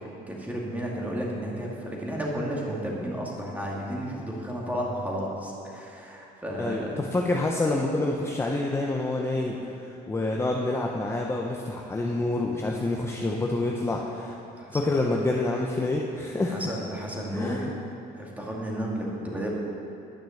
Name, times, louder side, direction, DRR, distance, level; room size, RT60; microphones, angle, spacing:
voice 1, 0.3-7.0 14.5-14.8 16.5-17.7 18.1-19.5, equal, 10° right, -3 dB, 2.1 m, -32 dB
voice 2, 6.6-14.4 14.7-16.5 17.3-17.7, left 2 dB, 15° left, 0 dB, 0.7 m, -27 dB
10.0 x 6.1 x 7.2 m, 2.7 s
cardioid pair, 110°, 17 cm